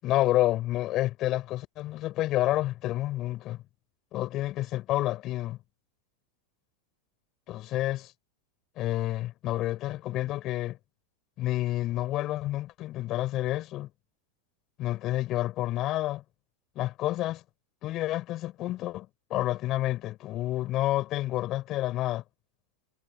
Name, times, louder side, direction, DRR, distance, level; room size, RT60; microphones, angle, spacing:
voice 1, 0.0-3.6 4.1-5.6 7.5-8.1 8.8-10.8 11.4-13.9 14.8-16.2 16.7-17.4 17.8-22.2, left 15 dB, 45° left, 6.5 m, -29 dB
hypercardioid pair, 100°, 0 cm